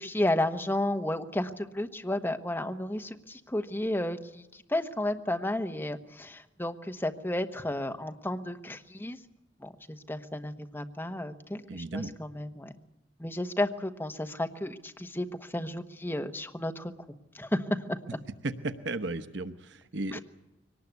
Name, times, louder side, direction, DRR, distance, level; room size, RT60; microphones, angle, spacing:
voice 1, 0.0-9.2 9.6-12.7 13.2-16.9 17.3-18.0 20.1-20.2, left 1 dB, 10° left, 6 dB, 1.2 m, -32 dB
voice 2, 11.6-12.1 18.4-20.2, right 2 dB, 70° right, 10 dB, 1.0 m, -35 dB
23.0 x 19.0 x 8.2 m, 1.0 s
head